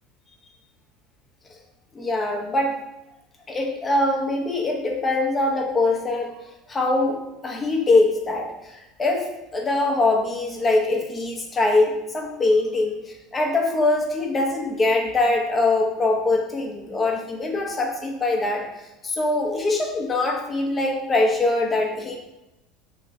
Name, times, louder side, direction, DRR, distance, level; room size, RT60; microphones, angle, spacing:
voice 1, 1.9-2.8 3.5-6.4 6.7-12.9 13.3-18.6 19.0-22.2, left 2 dB, 25° left, 0 dB, 0.8 m, -23 dB
3.2 x 3.0 x 3.5 m, 0.94 s
hypercardioid pair, 80°, 0 cm